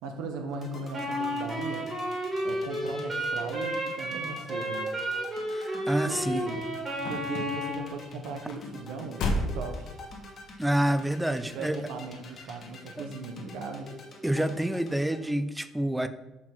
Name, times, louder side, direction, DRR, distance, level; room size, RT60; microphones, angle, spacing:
voice 1, 0.0-1.9 2.4-5.0 6.0-6.7 7.1-9.9 11.5-13.9, right 3 dB, 90° right, 5 dB, 1.0 m, -38 dB
sound 1, 0.5-15.3, left 2 dB, 30° left, 1.3 m, -47 dB
Wind instrument woodwind instrument, 0.9-7.9, equal, 25° right, 2.2 m, -32 dB
voice 2, 5.5-6.4 10.6-11.8 13.0-13.1 14.2-16.1, right 1 dB, 5° right, 12 dB, 0.3 m, -28 dB
sound 2, 5.7-10.5 11.2-11.6 11.9-12.0, left 1 dB, 65° left, 1.2 m, -34 dB
6.0 x 4.5 x 6.0 m, 1.1 s
cardioid pair, 165°, 0 cm